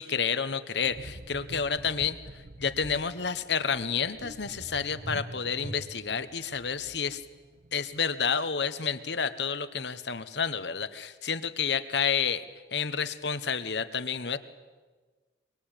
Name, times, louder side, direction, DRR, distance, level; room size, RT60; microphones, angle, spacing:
voice 1, 0.0-2.2 2.6-7.2 7.7-12.4 12.7-14.4, left 6 dB, 75° left, 11 dB, 1.2 m, -30 dB
sound 1, 0.8-8.2 8.5-8.7, right 1 dB, 55° right, 1.2 m, -45 dB
23.5 x 23.0 x 9.1 m, 1.4 s
head